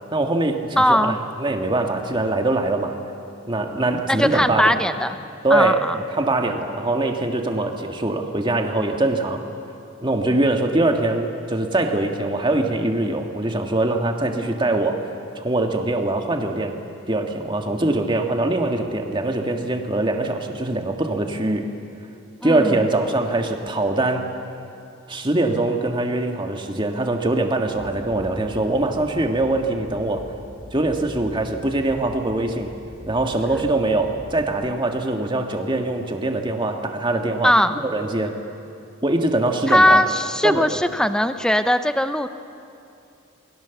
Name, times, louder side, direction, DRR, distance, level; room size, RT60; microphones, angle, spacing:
voice 1, 0.1-3.0 3.5-4.8 5.4-5.8 6.1-9.5 10.0-15.1 15.4-16.8 17.1-21.7 22.4-24.3 25.1-30.3 30.7-32.7 33.1-38.4 39.0-40.0 40.4-40.8, right 2 dB, 25° right, 4 dB, 1.8 m, -23 dB
voice 2, 0.8-1.2 4.1-5.2 5.5-6.0 22.4-22.9 37.4-37.7 39.7-42.3, left 1 dB, 5° left, 10 dB, 0.7 m, -19 dB
sound 1, 27.7-34.7, equal, 40° left, 4.2 m, -42 dB
28.0 x 21.5 x 7.1 m, 2.7 s
head